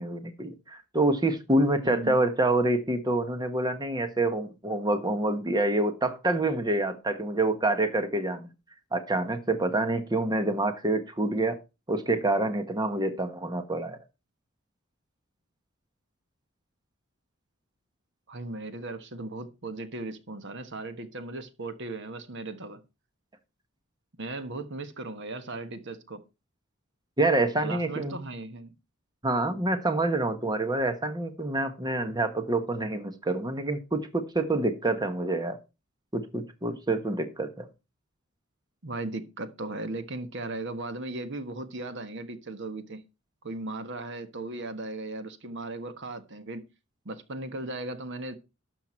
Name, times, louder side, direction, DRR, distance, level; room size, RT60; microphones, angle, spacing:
voice 1, 0.0-8.5 8.9-11.6 11.9-14.0 27.2-28.1 29.2-35.6 36.1-37.7, right 2 dB, 20° right, 1.2 m, -27 dB
voice 2, 1.8-2.2 18.3-22.8 24.2-26.2 27.6-28.7 38.8-43.0 43.4-46.6 47.0-48.4, right 2 dB, 60° right, 1.3 m, -37 dB
12.5 x 6.9 x 4.4 m
head